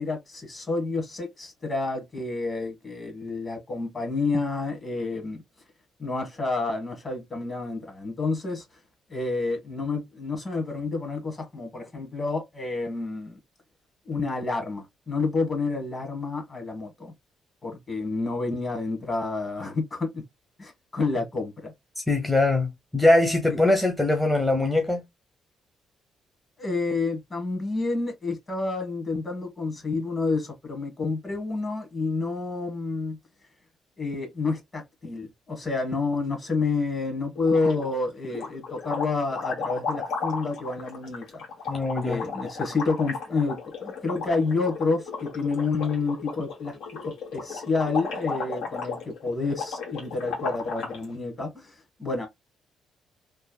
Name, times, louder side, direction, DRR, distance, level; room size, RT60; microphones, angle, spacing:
voice 1, 0.0-5.4 6.0-8.6 9.1-13.4 14.0-17.1 17.6-20.2 20.6-21.7 23.5-23.6 26.6-33.2 34.0-41.4 42.0-51.7 52.0-52.3, left 3 dB, 30° left, 1.4 m, -29 dB
voice 2, 22.0-25.0 41.7-42.2, left 2 dB, 5° left, 0.7 m, -22 dB
sound 1, 37.4-38.0 38.3-51.0, left 5 dB, 85° left, 1.3 m, -35 dB
3.2 x 2.1 x 2.3 m
cardioid pair, 90°, 0 cm